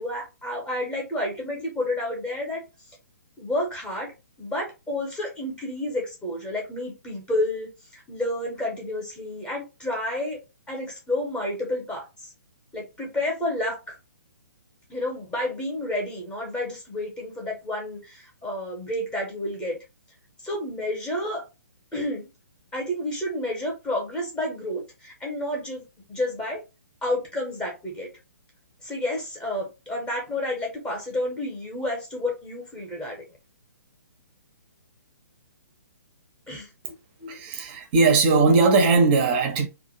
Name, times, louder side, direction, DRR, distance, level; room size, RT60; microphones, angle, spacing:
voice 1, 0.0-2.6 3.4-4.1 4.4-10.4 10.7-12.3 12.7-14.0 14.9-19.8 20.4-21.4 21.9-22.3 22.7-26.6 27.0-28.1 28.8-33.2 36.5-36.7, left 1 dB, 10° left, 0.7 m, -30 dB
voice 2, 37.2-39.7, right 3 dB, 30° right, 0.6 m, -19 dB
2.4 x 2.1 x 2.8 m
figure-of-eight pair, 125°, 10 cm